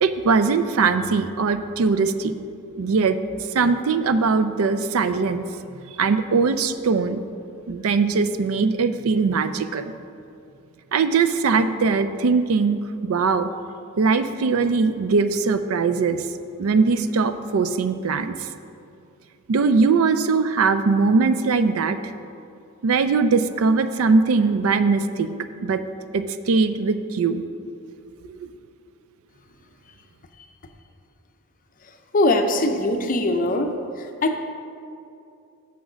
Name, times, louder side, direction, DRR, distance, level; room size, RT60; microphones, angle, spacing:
voice 1, 0.0-2.3 2.8-3.2 3.5-5.4 6.0-7.2 7.7-9.9 10.9-13.5 14.0-16.2 16.6-18.3 19.5-22.0 22.8-25.3 25.6-25.8 26.1-27.4 28.3-28.4, right 4 dB, 70° right, 11 dB, 0.4 m, -21 dB
voice 2, 32.1-33.7 34.2-34.4, left 2 dB, 35° left, 5 dB, 0.6 m, -21 dB
6.9 x 6.2 x 6.2 m, 2.5 s
head